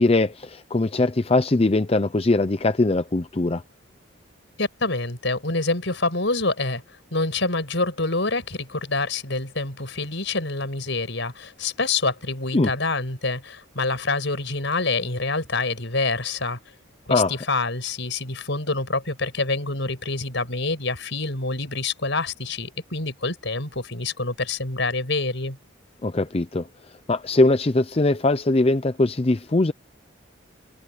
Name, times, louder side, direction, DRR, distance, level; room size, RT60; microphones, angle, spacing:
voice 1, 0.0-3.6 12.5-12.7 17.1-17.4 26.0-29.7, left 2 dB, 30° left, 0.5 m, -21 dB
voice 2, 4.6-6.8 7.1-16.6 17.1-25.6, left 3 dB, 60° left, 5.9 m, -26 dB
head